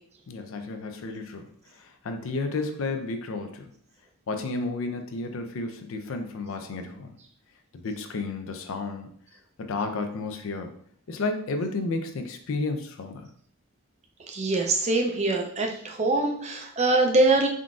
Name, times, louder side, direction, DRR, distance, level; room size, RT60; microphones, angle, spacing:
voice 1, 0.3-3.7 4.3-7.2 7.7-9.1 9.6-10.8 11.1-13.3, left 3 dB, 60° left, 6 dB, 0.4 m, -32 dB
voice 2, 14.3-17.5, right 2 dB, 30° right, 2 dB, 0.4 m, -23 dB
3.7 x 2.5 x 2.3 m, 0.63 s
head